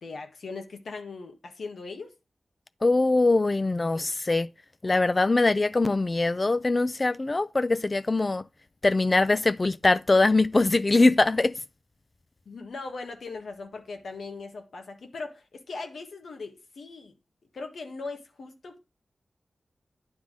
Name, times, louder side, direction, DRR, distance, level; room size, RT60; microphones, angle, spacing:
voice 1, 0.0-2.1 3.6-4.2 12.4-17.1 17.5-18.8, left 3 dB, 85° left, 1.6 m, -39 dB
voice 2, 2.8-4.5 4.8-8.4 8.8-11.5, left 2 dB, 35° left, 0.5 m, -22 dB
9.7 x 3.6 x 6.3 m
wide cardioid pair, 75°, 0 cm